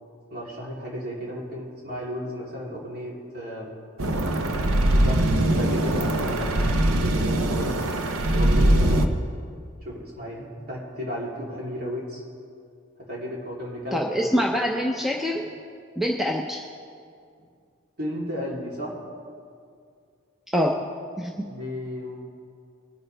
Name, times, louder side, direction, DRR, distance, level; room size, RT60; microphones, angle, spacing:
voice 1, 0.3-3.7 4.9-7.8 8.3-9.1 9.8-12.2 13.0-14.3 18.0-19.0 21.4-22.2, equal, 45° right, -5 dB, 3.2 m, -34 dB
sound 1, 4.0-9.1, right 1 dB, 90° right, 0.9 m, -22 dB
voice 2, 13.9-15.4 16.0-16.6 20.5-20.8 21.2-21.5, equal, ahead, -1 dB, 0.6 m, -25 dB
21.5 x 8.8 x 3.4 m, 2.3 s
head